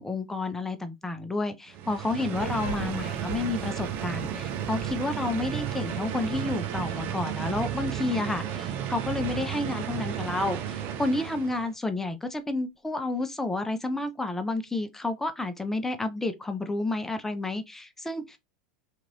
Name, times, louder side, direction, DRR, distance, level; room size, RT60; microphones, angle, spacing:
voice 1, 0.0-18.4, left 2 dB, 10° left, 0.6 m, -30 dB
sound 1, 1.7-11.7, right 10 dB, 45° right, 0.5 m, -33 dB
sound 2, 2.3-7.0, left 2 dB, 80° left, 0.9 m, -43 dB
Bowed string instrument, 5.3-11.6, right 7 dB, 80° right, 0.8 m, -51 dB
2.9 x 2.5 x 2.8 m
hypercardioid pair, 100°, 5 cm